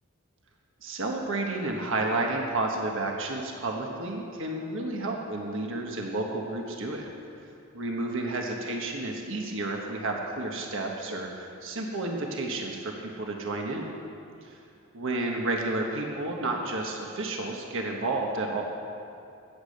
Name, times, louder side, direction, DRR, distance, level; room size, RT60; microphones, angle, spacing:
voice 1, 0.8-7.1 7.7-13.9 14.4-14.5 14.9-18.6, right 2 dB, 65° right, 1 dB, 1.5 m, -31 dB
14.0 x 8.5 x 7.9 m, 2.6 s
head